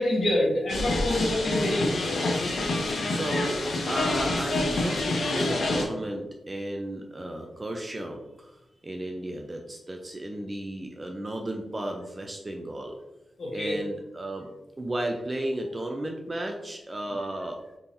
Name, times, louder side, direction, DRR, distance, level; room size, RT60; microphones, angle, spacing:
voice 1, 0.0-1.9 13.4-13.8, left 1 dB, 55° left, -4 dB, 1.0 m, -26 dB
sound 1, 0.7-5.9, left 2 dB, 75° left, 0.6 m, -27 dB
voice 2, 3.0-13.0 13.5-17.6, right 1 dB, 25° right, 2 dB, 0.3 m, -34 dB
3.7 x 2.8 x 2.6 m, 0.97 s
wide cardioid pair, 140°, 0 cm